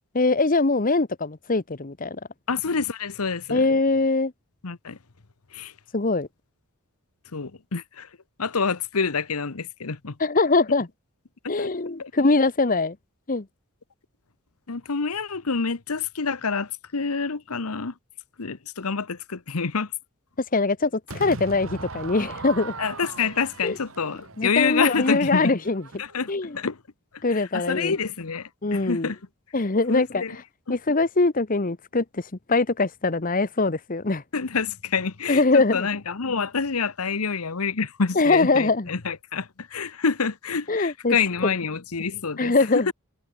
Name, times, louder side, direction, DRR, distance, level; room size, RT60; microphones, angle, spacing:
voice 1, 0.1-2.2 3.5-4.3 5.9-6.3 10.2-10.9 11.5-13.0 13.3-13.4 20.5-22.7 23.6-23.8 24.4-25.8 26.3-26.6 27.2-27.9 28.6-29.1 29.5-30.4 30.7-34.2 35.3-35.9 38.2-38.9 40.7-41.1 41.4-41.5 42.4-42.9, left 3 dB, 40° left, 1.0 m, -22 dB
voice 2, 2.5-3.7 4.6-5.0 5.5-5.7 7.3-8.1 8.4-10.2 11.4-11.7 12.0-12.1 14.7-17.9 18.4-19.9 22.8-25.5 26.0-26.8 27.3-29.2 29.9-30.4 30.7-30.8 34.3-42.9, left 5 dB, 80° left, 1.1 m, -27 dB
Crowd / Fireworks, 21.1-26.3, right 3 dB, 65° right, 1.9 m, -39 dB
head